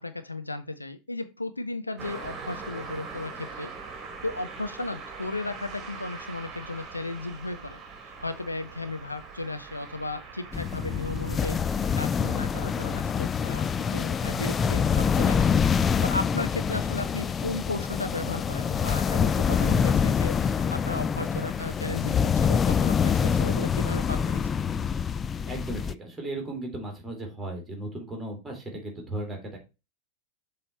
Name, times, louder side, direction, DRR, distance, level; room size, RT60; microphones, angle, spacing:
voice 1, 0.0-3.7 4.2-7.8 8.2-11.6 12.0-24.4, left 2 dB, 80° left, 10 dB, 0.6 m, -35 dB
Car passing by, 2.0-13.4, right 4 dB, 25° right, 1.9 m, -42 dB
sound 1, 10.5-25.9, left 7 dB, 20° left, 0.3 m, -26 dB
voice 2, 25.5-29.6, right 1 dB, 10° right, 2 dB, 2.5 m, -36 dB
7.0 x 3.4 x 4.1 m, 0.27 s
figure-of-eight pair, 90°, 0 cm